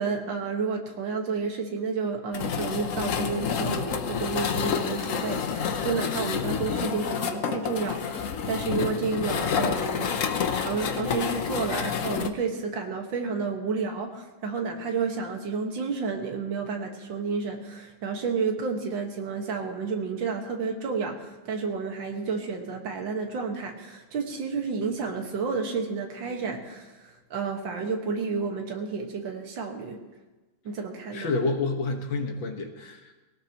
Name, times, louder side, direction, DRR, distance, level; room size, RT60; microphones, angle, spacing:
voice 1, 0.0-10.1 10.5-30.0 30.6-31.3, right 5 dB, 70° right, 2 dB, 2.3 m, -31 dB
sound 1, 2.3-12.3, left 7 dB, 55° left, 0.9 m, -29 dB
voice 2, 31.1-33.1, left 3 dB, 70° left, 4 dB, 2.2 m, -29 dB
20.0 x 17.5 x 3.0 m, 1.2 s
omnidirectional pair, 2.2 m